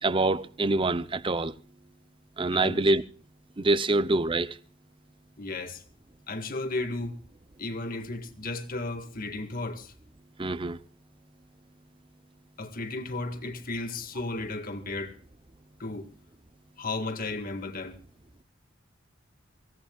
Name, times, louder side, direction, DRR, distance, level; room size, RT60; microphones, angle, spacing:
voice 1, 0.0-1.6 2.4-3.0 3.6-4.6 10.4-10.8, right 2 dB, 25° right, 0.6 m, -25 dB
voice 2, 5.4-5.8 6.3-7.2 7.6-9.9 12.6-15.2 15.8-16.1 16.8-18.0, left 2 dB, 45° left, 1.8 m, -34 dB
25.5 x 17.0 x 2.3 m
head